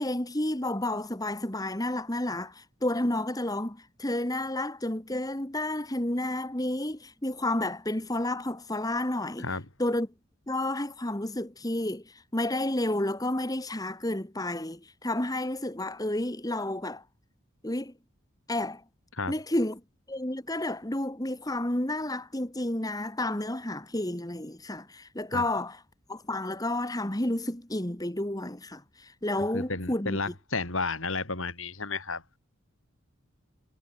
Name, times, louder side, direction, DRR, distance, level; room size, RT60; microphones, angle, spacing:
voice 1, 0.0-9.5 9.8-10.1 10.5-17.0 17.6-17.9 18.5-18.8 19.3-19.8 20.1-25.8 26.1-30.3, left 1 dB, 15° left, 1.7 m, -31 dB
voice 2, 29.5-32.2, left 3 dB, 70° left, 4.3 m, -32 dB
head